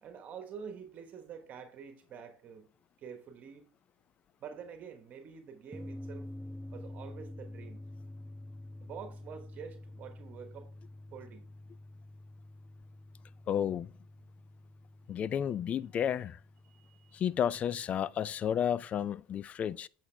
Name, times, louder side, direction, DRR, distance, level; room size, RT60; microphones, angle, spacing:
voice 1, 0.0-2.7 3.0-3.7 4.4-6.3 6.7-7.8 8.8-10.8 11.1-11.5 16.7-17.2, right 7 dB, 45° right, 1.1 m, -47 dB
sound 1, 5.7-18.6, left 1 dB, 10° right, 0.5 m, -48 dB
voice 2, 13.5-13.9 15.1-16.4 17.1-19.9, left 9 dB, 40° left, 0.3 m, -32 dB
8.3 x 6.1 x 3.3 m
supercardioid pair, 100°, 4 cm